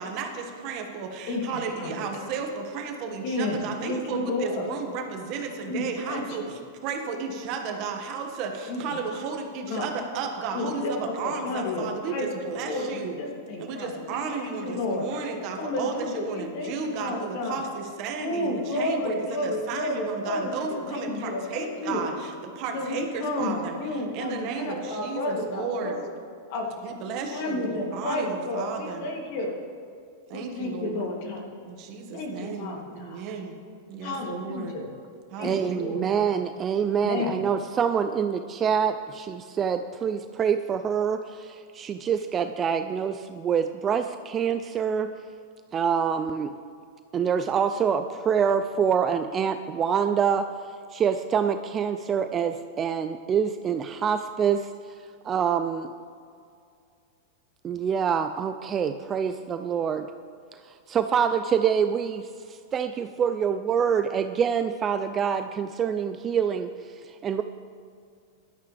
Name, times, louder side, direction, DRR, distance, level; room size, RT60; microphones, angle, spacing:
voice 1, 0.0-13.2 13.6-26.0 26.8-29.0 30.3-31.1 31.7-33.6 33.9-34.8 35.3-36.3, right 5 dB, 40° right, 3 dB, 1.7 m, -34 dB
voice 2, 1.3-1.9 3.2-4.7 5.7-6.5 8.7-8.8 9.7-9.9 10.5-15.1 15.6-17.6 18.2-22.0 22.7-26.1 26.5-26.7 27.3-29.5 30.3-31.4 32.1-33.2 34.0-34.8 35.3-36.0 37.0-37.4, left 2 dB, 50° left, -1 dB, 2.8 m, -31 dB
voice 3, 35.4-45.1 45.7-46.5 47.1-50.5 50.9-54.7 55.2-55.9 57.6-60.1 60.9-66.7 67.1-67.4, right 7 dB, 20° right, 8 dB, 0.4 m, -26 dB
16.5 x 12.5 x 3.4 m, 2.3 s
supercardioid pair, 150°, 0 cm